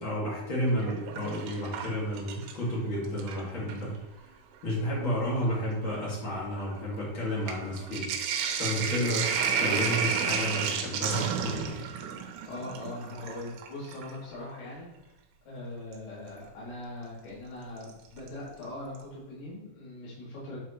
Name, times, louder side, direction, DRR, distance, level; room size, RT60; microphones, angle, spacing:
voice 1, 0.0-3.9 4.6-8.1 8.3-9.3 9.6-11.7, equal, 40° left, -5 dB, 1.8 m, -31 dB
Sink (filling or washing), 0.7-2.7 3.1-3.9 4.7-4.8 5.1-14.2 15.9-16.0 17.8-18.3 18.6-18.7 19.0-19.1, right 6 dB, 80° right, 3.1 m, -32 dB
voice 2, 12.5-14.9 15.5-20.6, left 1 dB, 85° left, -7 dB, 5.2 m, -41 dB
10.5 x 4.6 x 2.9 m, 1.0 s
omnidirectional pair, 5.7 m